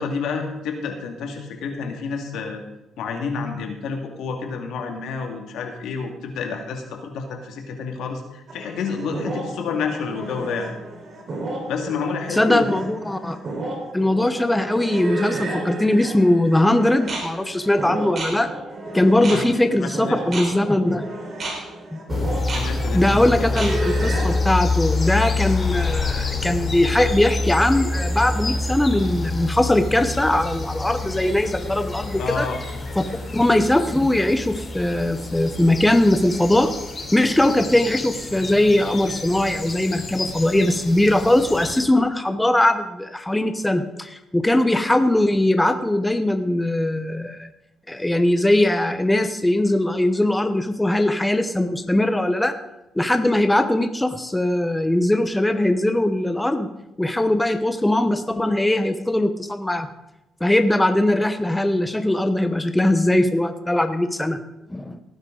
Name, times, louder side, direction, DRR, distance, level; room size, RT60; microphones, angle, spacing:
voice 1, 0.0-2.6 3.0-10.7 11.7-12.8 19.3-19.4 19.8-20.2 22.5-23.6 32.2-32.6, left 5 dB, 80° left, 3 dB, 2.1 m, -29 dB
sound 1, 8.5-24.4, right 2 dB, 50° right, 4.2 m, -32 dB
voice 2, 12.3-13.4 13.9-18.5 18.9-21.0 21.9-22.0 22.9-32.5 33.0-33.1 33.3-36.7 37.1-47.5 47.9-52.5 53.0-56.7 57.0-59.9 60.4-64.4 64.7-65.0, left 1 dB, 10° left, 8 dB, 0.9 m, -20 dB
sound 2, 22.1-41.8, left 3 dB, 35° left, 3.1 m, -27 dB
18.0 x 9.9 x 3.9 m, 0.90 s
cardioid pair, 90°, 0 cm